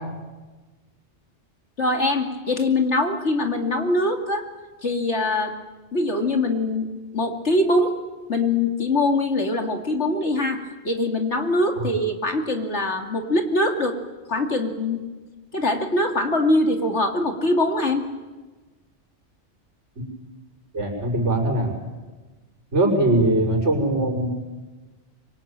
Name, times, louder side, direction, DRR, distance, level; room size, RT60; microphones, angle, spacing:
voice 1, 1.8-4.5 4.8-5.5 5.9-6.9 7.1-8.0 8.3-14.0 14.3-15.0 15.5-18.0, left 2 dB, 70° left, 4 dB, 3.0 m, -23 dB
voice 2, 20.7-21.7 22.7-24.3, right 1 dB, 75° right, -8 dB, 6.5 m, -21 dB
25.0 x 24.0 x 9.0 m, 1.2 s
omnidirectional pair, 1.2 m